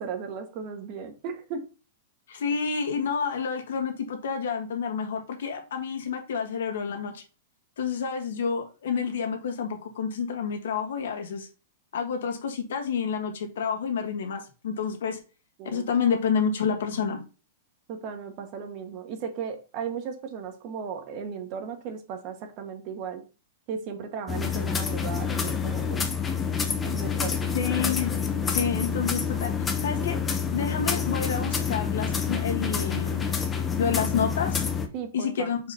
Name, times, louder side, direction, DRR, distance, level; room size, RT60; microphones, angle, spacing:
voice 1, 0.0-1.7 15.6-15.9 17.9-23.2 23.7-26.1 26.8-27.5 34.9-35.5, right 6 dB, 40° right, 1.2 m, -36 dB
voice 2, 2.3-7.2 7.8-11.5 11.9-15.2 15.6-17.2 27.5-28.1 28.5-29.5 29.8-30.2 30.5-33.3 33.8-34.6 35.1-35.6, left 6 dB, 80° left, 1.5 m, -29 dB
sound 1, 24.3-34.9, left 6 dB, 15° left, 0.7 m, -28 dB
4.7 x 3.9 x 5.5 m
supercardioid pair, 155°, 0 cm